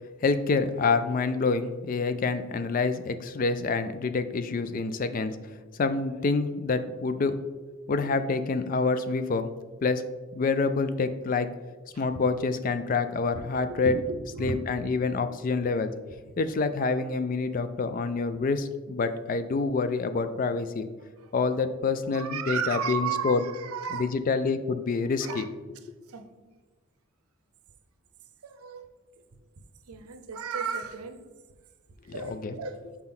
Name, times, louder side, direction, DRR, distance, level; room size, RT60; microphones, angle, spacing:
voice 1, 0.2-5.4 5.8-7.3 7.9-9.5 9.8-10.0 10.3-11.5 12.0-13.9 14.4-15.9 16.4-20.9 21.3-23.4 23.9-25.5 32.1-32.6, left 4 dB, 40° left, 10 dB, 0.3 m, -27 dB
voice 2, 13.7-14.6 20.3-20.4 21.2-21.3 22.1-24.1 25.2-25.5 26.1-26.5 28.4-28.9 29.9-31.2 32.1-32.8, right 5 dB, 80° right, 8 dB, 0.6 m, -34 dB
6.0 x 4.4 x 3.7 m, 1.3 s
head